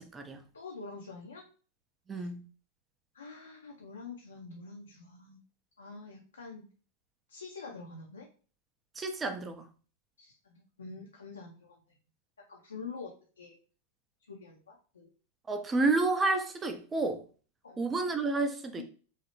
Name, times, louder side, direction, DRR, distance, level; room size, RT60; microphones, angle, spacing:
voice 1, 0.0-0.4 2.1-2.4 9.0-9.6 15.5-17.2 17.8-18.8, right 3 dB, 15° right, 0.4 m, -30 dB
voice 2, 0.5-1.4 2.1-2.3 3.1-5.4 5.8-6.7 7.3-8.3 10.2-11.8 12.4-13.6 14.3-15.1 17.6-17.8 18.8-18.9, left 4 dB, 70° left, 0.4 m, -46 dB
3.1 x 2.0 x 2.8 m
figure-of-eight pair, 90°, 0 cm